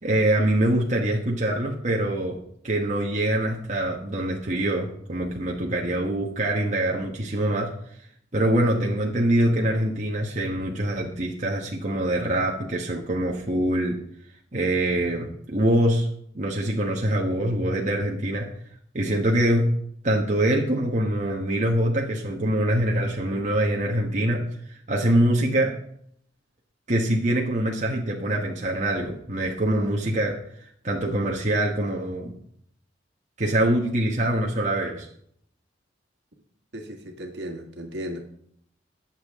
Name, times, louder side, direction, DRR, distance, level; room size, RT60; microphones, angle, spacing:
voice 1, 0.0-2.4 2.6-7.7 8.3-14.0 14.5-16.1 16.3-18.5 18.9-19.7 20.0-24.4 24.7-25.8 26.9-30.4 30.8-32.3 33.4-35.1, right 1 dB, 40° right, -1 dB, 1.3 m, -24 dB
voice 2, 36.7-38.2, equal, 65° right, 2 dB, 1.8 m, -35 dB
20.0 x 7.5 x 3.6 m, 0.68 s
head